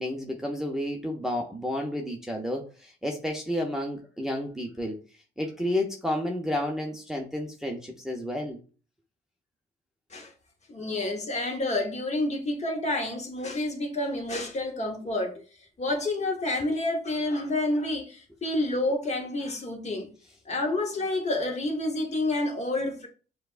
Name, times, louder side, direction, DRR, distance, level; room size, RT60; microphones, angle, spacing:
voice 1, 0.0-5.0 5.4-8.6, left 1 dB, ahead, 0.7 m, -31 dB
voice 2, 10.7-15.3 15.8-20.1 20.5-23.1, left 2 dB, 35° left, 1.1 m, -29 dB
6.5 x 2.3 x 2.5 m
cardioid pair, 90°, 20 cm